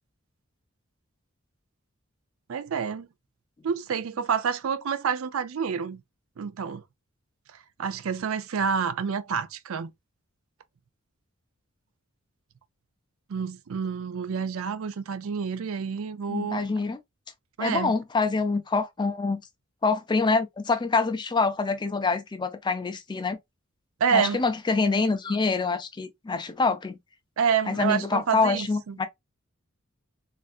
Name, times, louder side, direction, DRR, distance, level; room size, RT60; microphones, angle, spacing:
voice 1, 2.5-3.1 3.6-6.0 6.4-6.8 7.8-9.9 13.3-16.8 17.6-17.9 24.0-24.4 27.4-29.0, right 6 dB, 70° right, 0.4 m, -28 dB
voice 2, 16.3-17.0 17.6-19.4 19.8-23.4 24.1-27.0 27.7-29.1, left 4 dB, 20° left, 0.4 m, -26 dB
3.3 x 2.5 x 2.4 m
head